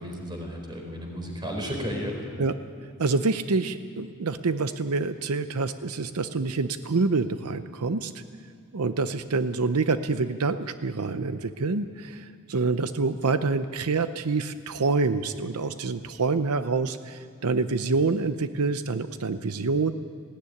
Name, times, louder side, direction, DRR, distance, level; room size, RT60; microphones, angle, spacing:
voice 1, 0.0-2.2, equal, 20° right, 1 dB, 4.4 m, -33 dB
voice 2, 3.0-8.2 8.7-19.9, right 3 dB, 85° right, 11 dB, 0.7 m, -27 dB
18.5 x 17.5 x 9.9 m, 2.2 s
head